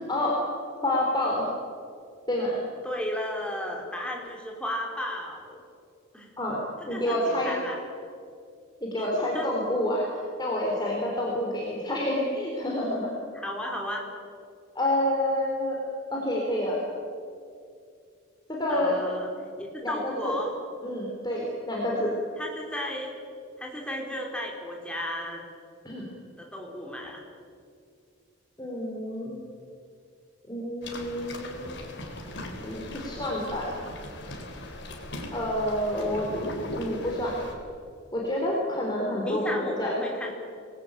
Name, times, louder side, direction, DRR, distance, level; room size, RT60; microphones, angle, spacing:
voice 1, 0.1-0.4 0.8-1.4 2.3-2.6 6.4-6.6 6.9-7.6 8.8-10.1 10.4-13.1 14.8-15.8 16.1-16.8 18.5-19.0 19.8-20.4 20.8-22.1 25.8-26.0 28.6-29.5 30.5-31.7 32.6-33.8 35.3-36.3 36.7-37.4 38.1-40.0, left 1 dB, 20° left, -3 dB, 3.8 m, -28 dB
voice 2, 2.8-5.6 6.1-6.3 6.9-7.8 9.1-9.5 13.4-14.0 18.7-19.3 19.6-20.5 22.4-23.1 23.6-25.4 26.4-27.2 35.9-36.2 39.2-40.3, left 1 dB, 5° left, 0 dB, 4.3 m, -34 dB
sound 1, 30.8-37.5, left 1 dB, 60° left, 3.8 m, -38 dB
25.5 x 20.5 x 9.0 m, 2.4 s
head